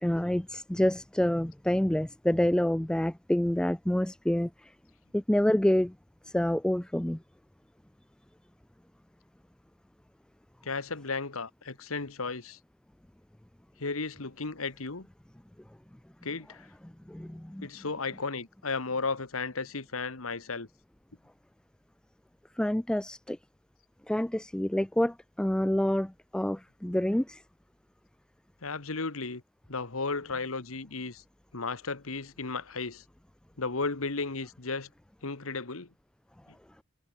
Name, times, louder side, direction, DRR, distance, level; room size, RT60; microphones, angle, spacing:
voice 1, 0.0-4.7 5.1-5.9 6.2-7.2 17.1-17.7 22.6-23.4 24.1-27.4, left 1 dB, 5° left, 0.3 m, -27 dB
voice 2, 10.6-12.6 13.8-15.1 16.2-16.7 17.6-20.7 28.6-29.4 29.7-31.2 31.5-33.0 33.6-34.9 35.2-35.9, left 4 dB, 75° left, 1.7 m, -34 dB
head